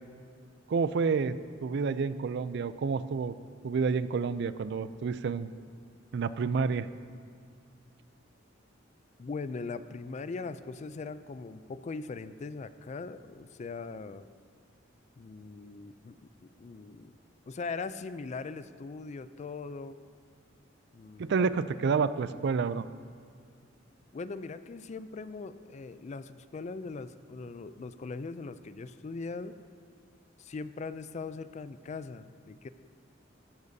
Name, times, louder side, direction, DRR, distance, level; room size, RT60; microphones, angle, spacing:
voice 1, 0.7-3.3 3.6-5.5 6.1-6.9 21.2-22.8, right 5 dB, 60° right, 14 dB, 0.4 m, -29 dB
voice 2, 9.2-14.2 15.2-16.2 16.6-17.1 17.5-20.0 20.9-21.5 24.1-29.6 30.4-32.7, left 4 dB, 35° left, 13 dB, 0.4 m, -40 dB
14.5 x 12.0 x 2.7 m, 2.2 s
head